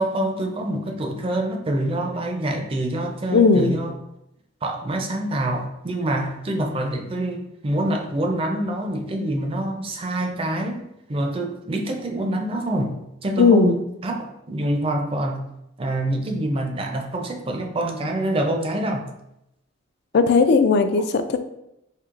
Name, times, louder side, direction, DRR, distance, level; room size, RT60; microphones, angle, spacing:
voice 1, 0.0-3.9 4.6-13.0 13.2-15.5 15.8-19.1, right 1 dB, 30° right, 3 dB, 0.4 m, -26 dB
voice 2, 3.3-3.7 13.4-13.8 20.1-21.4, left 4 dB, 55° left, 9 dB, 0.3 m, -17 dB
4.5 x 2.7 x 2.4 m, 0.84 s
head